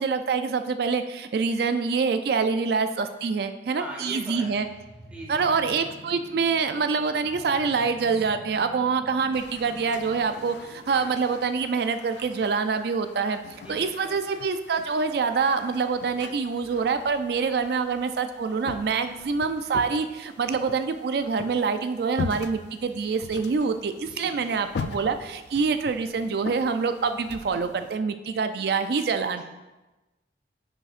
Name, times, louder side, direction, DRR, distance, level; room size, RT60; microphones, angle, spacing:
voice 1, 0.0-4.7 5.3-13.4 13.7-29.4, right 5 dB, 55° right, 9 dB, 0.3 m, -26 dB
voice 2, 3.7-4.5 5.1-5.6 13.5-14.2 24.0-24.7 29.2-29.4, right 1 dB, 5° right, -4 dB, 1.5 m, -41 dB
sound 1, 4.1-12.2, equal, 85° right, 0.9 m, -48 dB
sound 2, 9.3-28.0, left 5 dB, 65° left, 0.3 m, -42 dB
9.6 x 5.4 x 2.5 m, 1.1 s
head